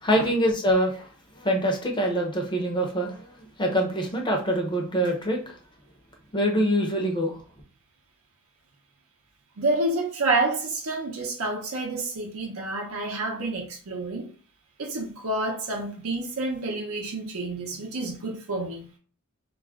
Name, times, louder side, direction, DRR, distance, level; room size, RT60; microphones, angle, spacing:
voice 1, 0.0-1.1 1.4-3.3 3.6-5.5 6.3-7.4, equal, 20° left, 0.6 m, -24 dB
voice 2, 9.6-14.3 14.8-18.9, right 2 dB, 80° right, 0.6 m, -29 dB
2.4 x 2.1 x 3.5 m
head